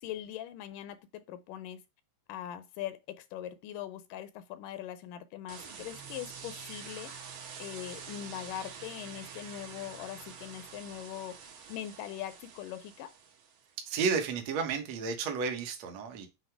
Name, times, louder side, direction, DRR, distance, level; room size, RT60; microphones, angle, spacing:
voice 1, 0.0-1.8 2.3-7.1 7.6-11.4 11.7-13.1, left 12 dB, 80° left, 2.0 m, -41 dB
sound 1, 5.5-13.7, right 6 dB, 85° right, 3.3 m, -47 dB
voice 2, 13.9-16.3, right 5 dB, 60° right, 2.1 m, -32 dB
7.9 x 2.9 x 4.5 m
omnidirectional pair, 3.8 m